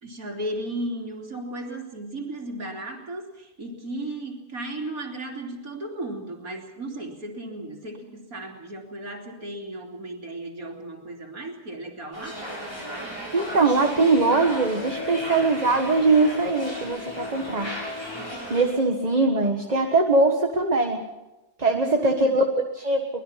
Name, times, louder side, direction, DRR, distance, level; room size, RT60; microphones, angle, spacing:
voice 1, 0.0-12.4 21.8-22.4, right 1 dB, 65° right, 2 dB, 3.5 m, -35 dB
sound 1, 12.1-18.7, equal, 15° left, 8.0 m, -36 dB
voice 2, 13.3-17.7 18.5-21.0 21.6-22.4 22.7-23.0, right 3 dB, 25° right, 3 dB, 1.6 m, -21 dB
sound 2, 14.0-20.2 20.6-20.7, left 4 dB, 85° left, 2.0 m, -38 dB
24.0 x 20.5 x 5.9 m, 1.0 s
omnidirectional pair, 1.6 m